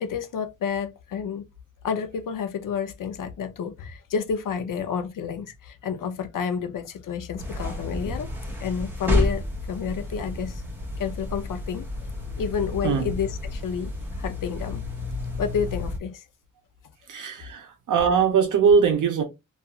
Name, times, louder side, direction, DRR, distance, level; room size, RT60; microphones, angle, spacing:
voice 1, 0.0-1.5 1.8-8.3 8.6-10.6 11.0-11.9 12.4-13.9 14.2-14.8 15.4-16.2, left 7 dB, 85° left, 0.5 m, -30 dB
sound 1, 7.4-16.0, left 1 dB, 5° right, 0.8 m, -30 dB
voice 2, 17.1-19.2, right 6 dB, 75° right, 0.5 m, -21 dB
2.4 x 2.3 x 2.8 m
wide cardioid pair, 140°, 31 cm